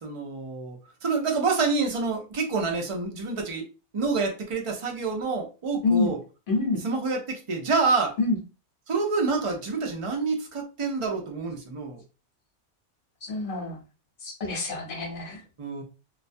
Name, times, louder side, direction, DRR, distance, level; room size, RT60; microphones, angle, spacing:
voice 1, 0.0-3.7 3.9-6.2 6.8-8.2 8.9-12.0 15.6-15.8, right 4 dB, 45° right, 2 dB, 0.4 m, -27 dB
voice 2, 6.5-6.8 8.2-8.4 13.3-13.8 14.2-15.4, left 3 dB, 50° left, 0 dB, 0.9 m, -26 dB
2.3 x 2.1 x 2.5 m, 0.32 s
omnidirectional pair, 1.2 m